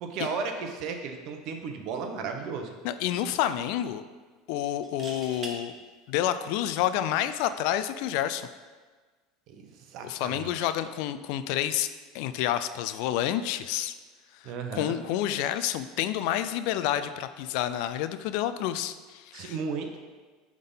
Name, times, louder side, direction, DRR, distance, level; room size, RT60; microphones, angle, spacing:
voice 1, 0.0-2.7 9.5-10.7 14.4-15.0 19.3-20.0, right 5 dB, 55° right, 5 dB, 0.9 m, -35 dB
sound 1, 1.9-2.1 2.5-2.6 4.7-5.6 7.4-7.6, right 3 dB, 30° right, 1.1 m, -41 dB
voice 2, 2.8-4.0 4.5-5.7 6.1-8.5 10.0-11.9 12.1-13.9 14.4-19.6, left 11 dB, 65° left, 12 dB, 0.4 m, -29 dB
9.3 x 3.6 x 3.9 m, 1.4 s
supercardioid pair, 130°, 0 cm